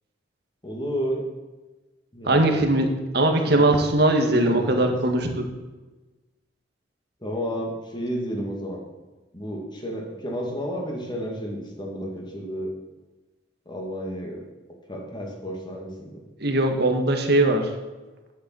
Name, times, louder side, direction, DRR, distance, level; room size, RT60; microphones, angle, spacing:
voice 1, 0.6-1.2 2.1-2.7 3.5-3.8 4.3-4.9 7.2-8.8 9.3-12.7 13.7-14.4 14.9-16.2, equal, 25° left, 0 dB, 2.5 m, -31 dB
voice 2, 2.3-5.5 16.4-17.7, right 1 dB, 60° right, 4 dB, 1.9 m, -20 dB
11.5 x 8.5 x 7.9 m, 1.2 s
head